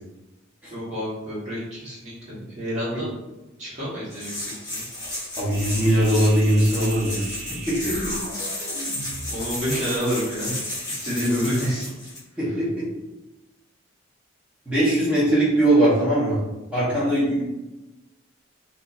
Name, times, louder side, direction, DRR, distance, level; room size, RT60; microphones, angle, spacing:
voice 1, 0.7-3.1 3.6-4.8 7.9-8.0 9.3-10.6 10.9-11.9, equal, 35° right, -9 dB, 1.4 m, -28 dB
sound 1, 4.1-12.2, left 1 dB, 20° left, 1.5 m, -33 dB
voice 2, 5.4-7.2 7.7-8.1 11.6-11.7 12.4-12.9 14.7-16.4 16.7-17.5, right 1 dB, 5° right, -12 dB, 1.1 m, -21 dB
sound 2, 5.5-10.1, right 2 dB, 55° right, 0.5 m, -38 dB
3.6 x 2.5 x 2.6 m, 1.0 s
head